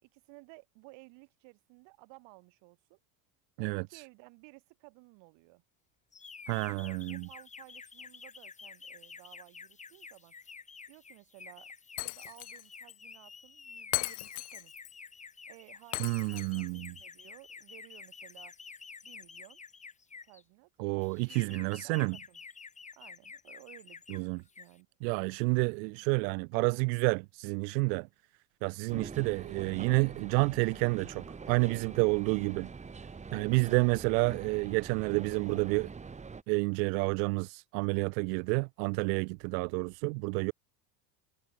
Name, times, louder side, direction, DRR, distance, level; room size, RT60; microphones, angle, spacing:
voice 1, 0.0-3.0 3.6-5.6 6.6-10.4 10.9-11.7 12.0-14.7 15.5-18.5 19.0-19.6 20.3-20.7 21.1-22.4 23.0-24.9, right 27 dB, 60° right, 5.7 m, -56 dB
sound 1, 6.1-20.4 21.0-24.2 24.5-24.8, left 5 dB, 15° left, 1.8 m, -50 dB
voice 2, 6.5-7.3 16.0-16.9 20.8-22.2 24.1-24.4 25.0-28.1 28.6-32.7 33.3-35.9 36.5-40.5, right 31 dB, 75° right, 0.6 m, -29 dB
Shatter, 12.0-12.6 12.9-13.0 13.9-14.9 15.9-16.9, left 20 dB, 40° left, 0.7 m, -37 dB
sound 2, 28.9-36.4, right 5 dB, 15° right, 2.0 m, -44 dB
cardioid pair, 145°, 49 cm